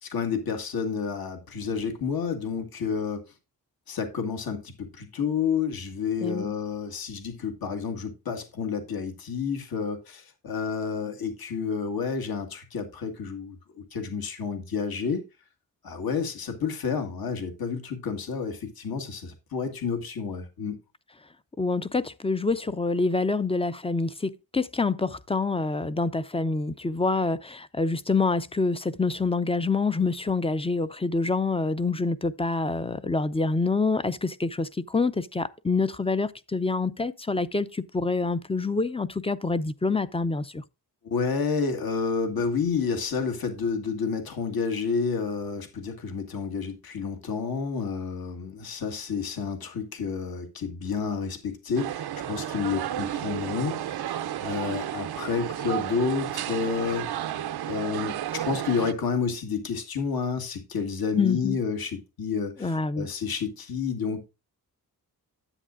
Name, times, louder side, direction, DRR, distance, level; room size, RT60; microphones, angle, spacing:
voice 1, 0.0-3.2 3.9-13.6 13.9-15.2 15.8-20.8 41.0-54.0 54.4-57.3 57.7-58.2 58.5-64.2, left 5 dB, 70° left, 1.9 m, -30 dB
voice 2, 6.2-6.5 21.6-40.6 61.2-61.6 62.6-63.1, left 3 dB, 15° left, 0.5 m, -26 dB
sound 1, 51.8-58.9, right 11 dB, 80° right, 0.7 m, -32 dB
10.0 x 8.4 x 2.5 m
cardioid pair, 100°, 38 cm